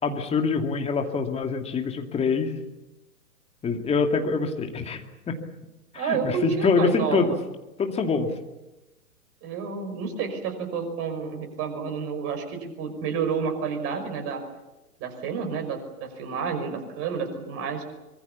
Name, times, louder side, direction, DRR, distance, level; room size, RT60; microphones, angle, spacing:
voice 1, 0.0-2.5 3.6-5.4 5.9-7.3 7.8-8.3, left 4 dB, 15° left, 4 dB, 2.5 m, -25 dB
voice 2, 5.9-7.4 9.4-14.4 15.0-17.8, right 6 dB, 30° right, 5 dB, 5.8 m, -30 dB
25.0 x 23.0 x 7.3 m, 1.0 s
figure-of-eight pair, 115°, 45 cm